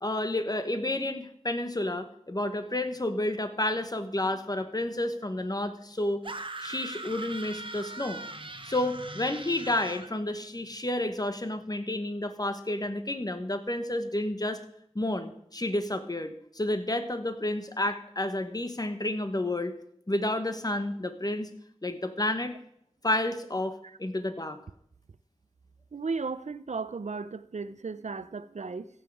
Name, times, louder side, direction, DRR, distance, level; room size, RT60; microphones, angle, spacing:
voice 1, 0.0-6.2 6.6-14.6 14.9-19.7 20.1-21.5 21.8-22.6 23.0-24.6, left 1 dB, 35° left, 1.2 m, -30 dB
sound 1, 6.2-10.1, right 2 dB, 45° right, 1.0 m, -40 dB
voice 2, 25.9-28.9, right 4 dB, 75° right, 0.6 m, -35 dB
15.5 x 7.3 x 4.8 m
wide cardioid pair, 40°, 12 cm